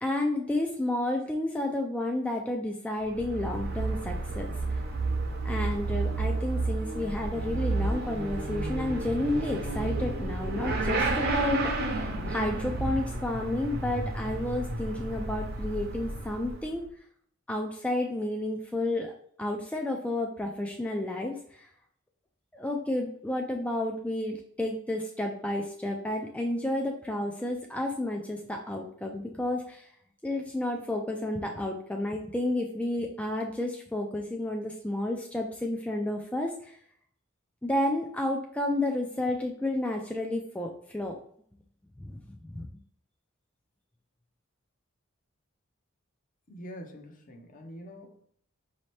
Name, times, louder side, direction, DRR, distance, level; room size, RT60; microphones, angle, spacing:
voice 1, 0.0-4.8 5.4-16.8 17.5-21.7 22.5-29.9 30.2-36.8 37.6-41.2 42.0-42.2 42.5-42.7, left 1 dB, 5° left, 1 dB, 0.3 m, -31 dB
Motorcycle / Accelerating revving vroom, 3.0-16.8, right 2 dB, 50° right, 0.7 m, -31 dB
voice 2, 46.5-48.2, equal, 40° left, 4 dB, 0.7 m, -45 dB
5.1 x 2.8 x 3.2 m, 0.63 s
head